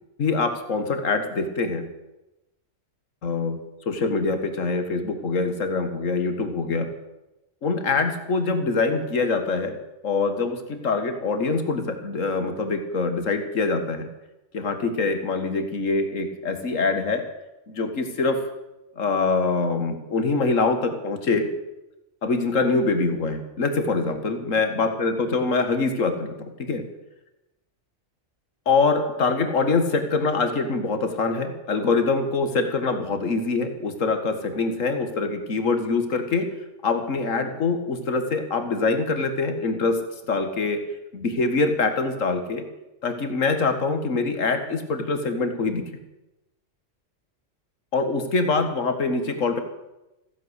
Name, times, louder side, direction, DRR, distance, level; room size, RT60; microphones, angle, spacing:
voice 1, 0.2-1.8 3.2-3.6 3.9-6.9 7.6-9.8 10.0-14.1 14.5-17.2 17.7-18.4 19.0-21.5 22.2-26.8 28.7-36.5 36.8-40.0 40.3-40.8 41.1-42.7 43.0-45.8 47.9-49.6, left 3 dB, 80° left, 7 dB, 2.0 m, -24 dB
15.5 x 10.5 x 8.1 m, 0.97 s
omnidirectional pair, 1.3 m